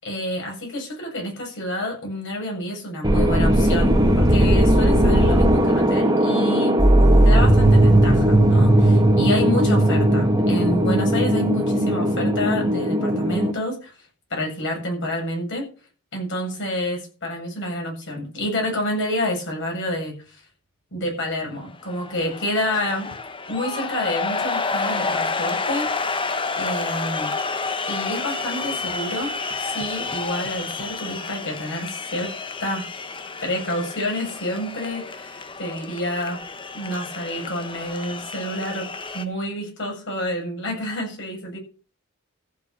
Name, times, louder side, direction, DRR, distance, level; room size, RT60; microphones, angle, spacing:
voice 1, 0.0-6.8 7.2-13.9 14.3-15.6 16.1-20.4 20.9-23.1 23.5-26.2 26.6-27.3 27.9-29.3 29.6-32.3 32.6-32.9 33.4-36.4 36.7-41.6, left 1 dB, 60° left, 1 dB, 7.8 m, -28 dB
sound 1, 3.0-13.5, right 1 dB, 20° right, 1.9 m, -17 dB
sound 2, 21.6-39.2, left 4 dB, 25° left, 1.0 m, -30 dB
14.5 x 7.0 x 6.8 m, 0.37 s
head